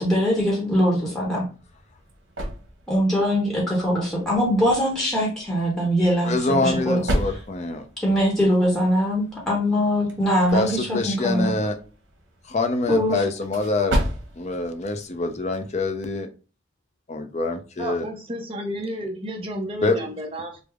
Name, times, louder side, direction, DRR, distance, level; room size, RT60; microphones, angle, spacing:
voice 1, 0.0-1.4 2.9-7.4 8.0-11.5 12.9-13.2, equal, ahead, 0.9 m, -22 dB
sound 1, 1.4-16.0, equal, 85° right, 0.9 m, -34 dB
voice 2, 6.2-7.8 10.5-11.8 12.5-14.0 14.4-16.3 17.1-18.0 19.8-19.9, left 2 dB, 35° left, 0.4 m, -25 dB
voice 3, 17.8-20.6, equal, 30° right, 0.6 m, -32 dB
3.4 x 2.0 x 3.4 m
head